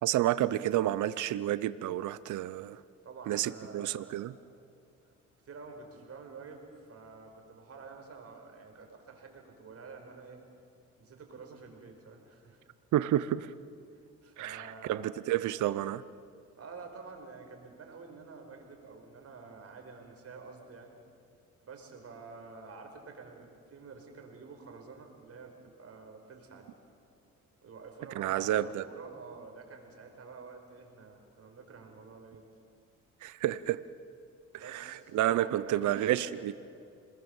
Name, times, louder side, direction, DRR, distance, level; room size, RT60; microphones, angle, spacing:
voice 1, 0.0-2.8 3.3-4.3 12.9-13.5 14.4-16.0 28.2-28.9 33.2-33.8 34.5-36.5, right 13 dB, 75° right, 16 dB, 0.7 m, -30 dB
voice 2, 3.0-4.2 5.0-5.1 5.4-10.4 11.0-12.6 13.9-15.0 16.5-21.0 21.6-26.8 27.6-32.4 34.6-36.5, right 4 dB, 50° right, 3 dB, 5.0 m, -49 dB
27.5 x 20.5 x 7.2 m, 2.3 s
cardioid pair, 90°, 30 cm